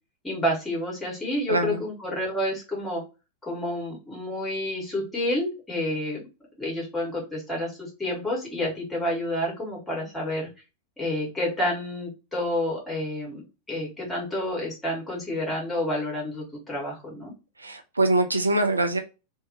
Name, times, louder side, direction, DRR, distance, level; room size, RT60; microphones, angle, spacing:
voice 1, 0.2-3.0 3.4-6.2 6.6-10.5 11.0-17.3, left 1 dB, 10° left, 2.1 m, -29 dB
voice 2, 1.5-1.8 17.6-19.0, right 2 dB, 80° right, 0.5 m, -23 dB
3.3 x 2.7 x 2.8 m
figure-of-eight pair, 90°, 0 cm